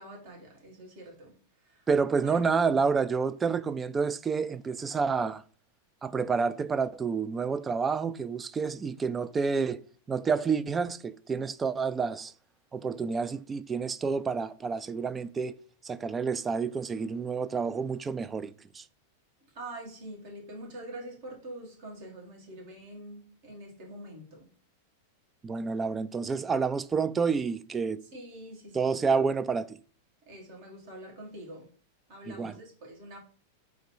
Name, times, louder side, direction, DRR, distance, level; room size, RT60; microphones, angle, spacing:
voice 1, 0.0-1.4 1.6-1.9 2.2-2.6 19.5-24.5 28.1-29.0 30.3-31.7 32.1-33.2, right 1 dB, 55° right, 1.9 m, -45 dB
voice 2, 1.9-5.4 6.0-9.8 10.1-12.3 12.7-15.6 15.8-18.8 25.4-28.0 28.7-29.8 32.3-32.6, right 5 dB, 20° right, 0.3 m, -29 dB
3.8 x 3.0 x 4.5 m
hypercardioid pair, 95°, 0 cm